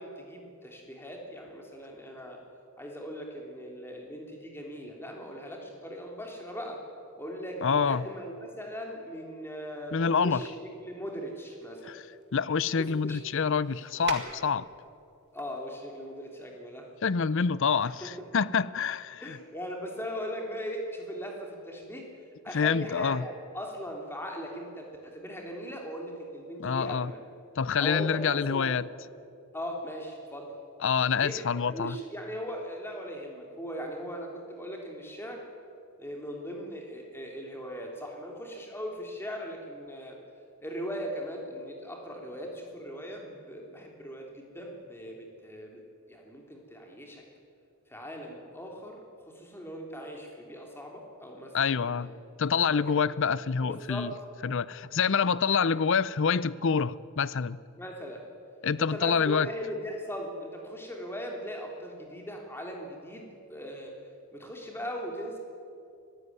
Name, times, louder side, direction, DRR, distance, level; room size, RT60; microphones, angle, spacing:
voice 1, 0.0-2.4 2.8-6.8 7.2-10.5 10.8-12.0 12.8-13.2 15.3-16.9 18.0-18.1 19.2-22.1 22.4-27.2 27.8-28.8 29.5-30.5 31.2-35.4 36.0-40.2 40.6-45.8 46.1-47.2 47.9-52.1 52.7-53.2 53.7-54.1 57.8-58.2 58.8-64.0 64.3-65.4, equal, 10° left, 3.2 m, -39 dB
voice 2, 7.6-8.0 9.9-10.4 12.3-14.7 17.0-19.4 22.5-23.2 26.6-27.1 27.6-28.8 30.8-32.0 51.5-52.1 52.4-54.1 54.4-57.6 58.6-59.5, left 6 dB, 55° left, 0.5 m, -26 dB
sound 1, 11.3-14.9 15.2-15.9, right 4 dB, 50° right, 2.2 m, -43 dB
24.5 x 15.5 x 9.5 m
head